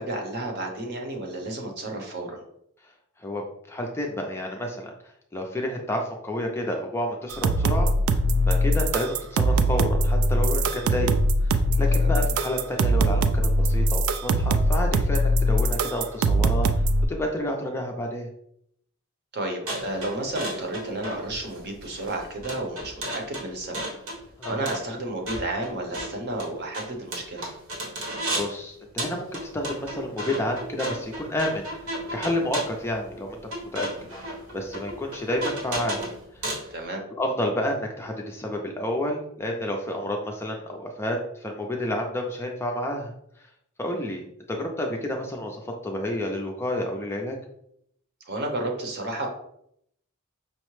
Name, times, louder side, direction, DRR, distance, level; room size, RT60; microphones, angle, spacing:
voice 1, 0.0-2.4 11.9-12.1 19.3-23.8 24.5-27.5 36.7-37.0 48.3-49.3, right 2 dB, 50° right, 2 dB, 0.8 m, -32 dB
voice 2, 3.2-4.9 5.3-8.2 8.5-18.3 24.4-24.7 28.0-29.3 29.5-33.9 34.2-36.0 36.3-36.5 37.1-43.1 43.8-47.4, left 1 dB, 10° left, 1 dB, 0.4 m, -30 dB
sound 1, 7.3-17.0, right 1 dB, 75° right, 0.3 m, -22 dB
sound 2, 19.7-28.6 29.0-36.7, right 1 dB, 90° right, 1.2 m, -34 dB
5.5 x 2.1 x 3.1 m, 0.73 s
head